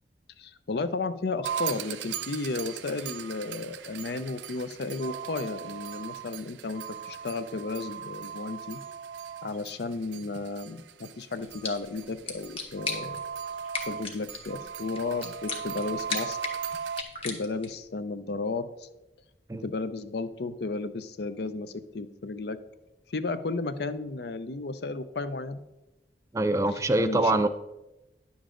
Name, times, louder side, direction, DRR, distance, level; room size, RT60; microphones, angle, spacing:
voice 1, 0.4-8.8 9.4-13.2 13.9-16.4 17.2-18.9 19.6-22.6 23.1-25.6 27.0-27.5, left 3 dB, 65° left, 12 dB, 0.5 m, -33 dB
sound 1, 1.4-17.0, right 8 dB, 85° right, 0.4 m, -38 dB
sound 2, 11.3-17.8, left 4 dB, 30° left, 1.2 m, -39 dB
voice 2, 26.3-27.5, right 2 dB, 15° right, 10 dB, 0.4 m, -24 dB
10.0 x 7.2 x 3.8 m, 0.98 s
head